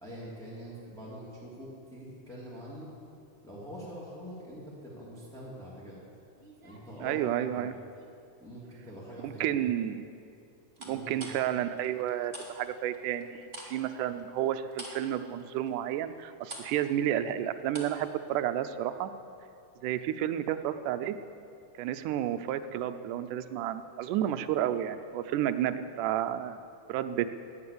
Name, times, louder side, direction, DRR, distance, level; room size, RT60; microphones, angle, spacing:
voice 1, 0.0-3.0 3.4-6.0 6.6-7.7 8.4-9.7 10.8-11.3, equal, ahead, -8 dB, 2.7 m, -44 dB
sound 1, 6.4-8.1 8.5-9.0 10.7-12.5 12.8-18.0 18.3-18.4, right 1 dB, 20° right, 2.2 m, -47 dB
voice 2, 7.0-7.7 9.2-10.1 10.8-19.1 19.8-21.2 21.8-26.6 26.9-27.3, right 11 dB, 90° right, 11 dB, 2.2 m, -31 dB
18.5 x 10.5 x 6.9 m, 2.5 s
omnidirectional pair, 3.6 m